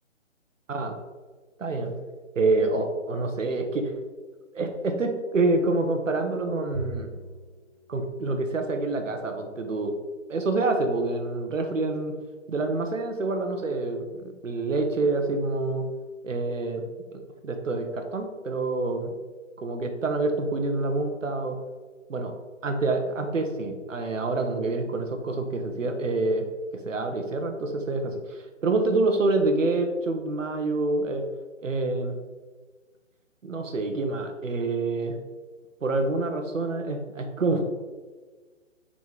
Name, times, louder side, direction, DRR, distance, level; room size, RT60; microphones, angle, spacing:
voice 1, 1.6-2.0 2.3-3.9 4.5-7.1 7.9-10.0 10.3-12.2 12.5-15.9 16.2-16.8 17.1-19.1 19.6-21.6 22.1-22.4 22.6-26.5 26.8-31.3 31.6-32.2 33.4-35.2 35.8-37.6, right 2 dB, 75° right, 5 dB, 1.1 m, -27 dB
Bowed string instrument, 6.7-9.3, right 3 dB, 20° right, 0.8 m, -42 dB
6.1 x 4.1 x 3.7 m, 1.4 s
figure-of-eight pair, 145°, 39 cm